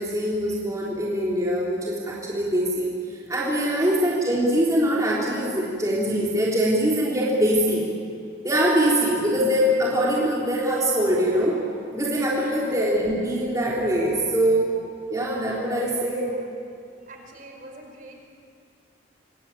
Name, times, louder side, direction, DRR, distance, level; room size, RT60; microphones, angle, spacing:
voice 1, 0.0-2.9 3.3-7.8 8.4-11.6 11.9-14.6 15.1-16.3, equal, 15° right, -6 dB, 3.5 m, -23 dB
voice 2, 12.4-12.8 16.1-16.5 17.0-18.3, right 2 dB, 45° right, 2 dB, 4.8 m, -45 dB
27.0 x 22.0 x 9.0 m, 2.4 s
head